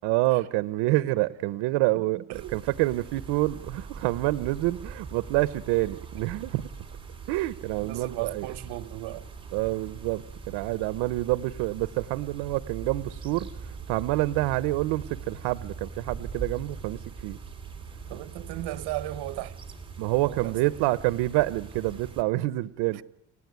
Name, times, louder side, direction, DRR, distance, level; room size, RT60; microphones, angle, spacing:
voice 1, 0.0-2.2 2.5-6.7 7.3-8.5 9.5-17.4 20.0-23.0, right 18 dB, 90° right, 0.9 m, -27 dB
voice 2, 1.9-2.6 7.8-9.3 18.1-19.6 20.3-20.8 22.9-23.0, right 16 dB, 70° right, 1.2 m, -36 dB
sound 1, 2.3-22.2, right 5 dB, 15° right, 3.3 m, -42 dB
29.5 x 16.0 x 9.5 m
cardioid pair, 145°, 40 cm